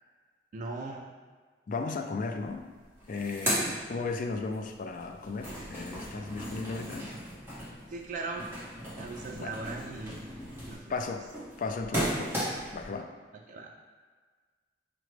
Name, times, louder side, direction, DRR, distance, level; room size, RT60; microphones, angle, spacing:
voice 1, 0.5-1.1 3.5-3.7 7.9-8.6 8.9-10.3 10.6-11.1 13.5-13.7, right 3 dB, 45° right, 0 dB, 0.3 m, -39 dB
voice 2, 1.7-2.7 3.1-7.1 9.4-9.5 10.9-11.3 11.6-13.1, left 4 dB, 50° left, 5 dB, 0.4 m, -35 dB
sound 1, 2.4-2.5 2.8-4.6 4.9-12.8, equal, 15° right, 1.0 m, -36 dB
5.9 x 2.1 x 3.1 m, 1.5 s
head